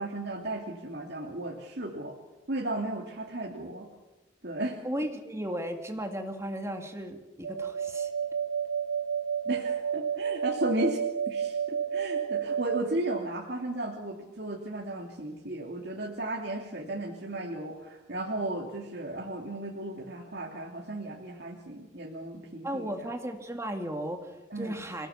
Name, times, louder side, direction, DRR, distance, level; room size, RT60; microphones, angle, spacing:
voice 1, 0.0-2.1 2.5-3.9 4.4-4.8 9.5-11.0 11.3-23.1 24.5-24.7, right 1 dB, 60° right, -1 dB, 2.7 m, -35 dB
voice 2, 4.8-8.1 22.6-25.1, equal, 15° right, 4 dB, 2.2 m, -35 dB
sound 1, 7.4-12.8, right 7 dB, 75° right, 1.0 m, -31 dB
28.0 x 17.5 x 7.3 m, 1.1 s
head